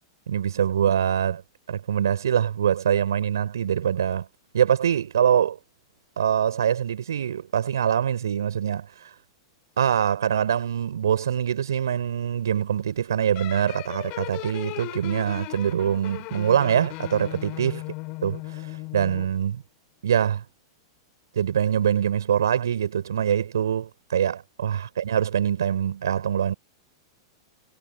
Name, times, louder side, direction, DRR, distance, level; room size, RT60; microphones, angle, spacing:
voice 1, 0.3-1.4 1.7-4.3 4.5-5.6 6.2-9.1 9.8-17.8 18.2-19.6 20.0-20.4 21.3-26.5, right 9 dB, 65° right, 4.6 m, -24 dB
sound 1, 13.4-19.4, left 27 dB, 40° left, 8.0 m, -37 dB
figure-of-eight pair, 100°, 2 cm